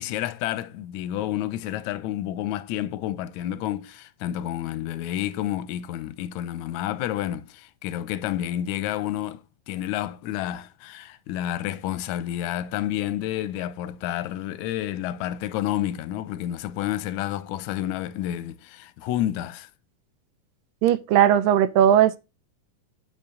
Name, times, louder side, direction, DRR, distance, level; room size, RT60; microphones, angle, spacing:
voice 1, 0.0-19.7, left 12 dB, 75° left, 1.8 m, -30 dB
voice 2, 20.8-22.2, right 10 dB, 90° right, 2.4 m, -18 dB
8.5 x 8.4 x 3.8 m
omnidirectional pair, 3.9 m